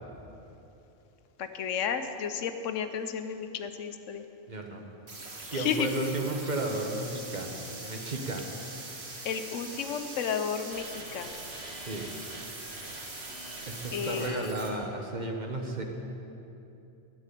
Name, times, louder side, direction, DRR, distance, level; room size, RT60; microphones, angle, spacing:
voice 1, 1.4-4.2 5.5-5.9 9.2-11.3 13.9-14.5, left 7 dB, 90° left, 8 dB, 1.1 m, -32 dB
voice 2, 4.5-4.8 5.5-7.5 7.8-8.5 11.8-12.1 13.7-15.8, right 2 dB, 40° right, 2 dB, 1.1 m, -33 dB
sound 1, 5.1-14.7, right 2 dB, 60° right, 1.8 m, -42 dB
10.5 x 7.6 x 9.2 m, 2.9 s
omnidirectional pair, 1.2 m